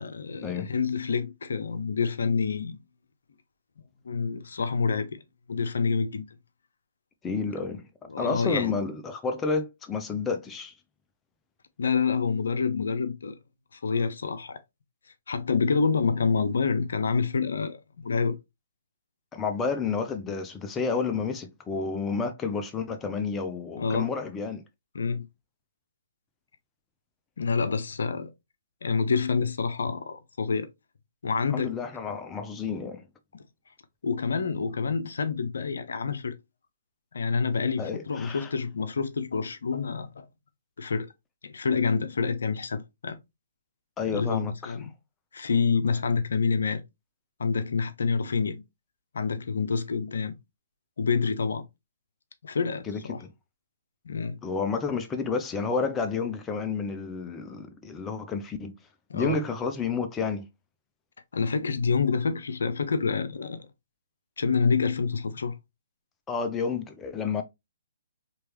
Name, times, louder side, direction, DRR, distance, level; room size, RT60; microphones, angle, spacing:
voice 1, 0.0-2.8 4.0-5.2 5.5-6.2 8.1-8.8 11.8-13.3 13.7-14.6 15.3-18.4 23.8-24.1 24.9-25.3 27.4-28.3 28.8-30.7 31.2-31.7 33.3-33.4 34.0-36.3 37.1-40.2 40.8-41.1 41.4-43.2 44.1-44.9 45.3-46.8 47.4-48.6 49.1-50.4 51.0-51.6 52.4-53.2 54.0-54.4 59.1-59.4 61.3-63.7 64.4-65.5, left 5 dB, 65° left, 0.7 m, -27 dB
voice 2, 7.2-7.9 8.2-10.7 19.3-24.6 31.5-33.0 37.8-38.5 44.0-44.7 52.9-53.3 54.4-58.7 59.1-60.5 66.3-67.4, left 5 dB, 15° left, 0.6 m, -30 dB
4.6 x 3.1 x 3.0 m
figure-of-eight pair, 130°, 0 cm